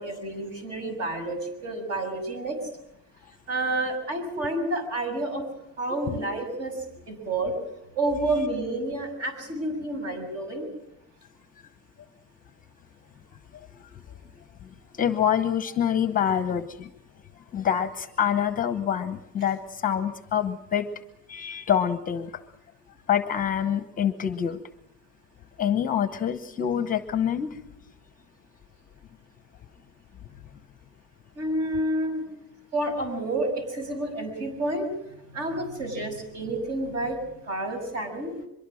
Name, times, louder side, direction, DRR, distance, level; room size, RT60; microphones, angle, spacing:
voice 1, 0.0-2.6 3.5-5.4 5.8-7.5 8.0-10.7 31.4-32.2 32.7-34.9 35.3-37.2 37.4-38.3, right 2 dB, 45° right, 7 dB, 6.9 m, -29 dB
voice 2, 15.0-16.9 17.5-20.9 21.3-22.4 23.1-24.6 25.6-27.6, left 9 dB, 25° left, 10 dB, 0.9 m, -26 dB
24.0 x 22.5 x 6.4 m, 0.81 s
cardioid pair, 170°, 34 cm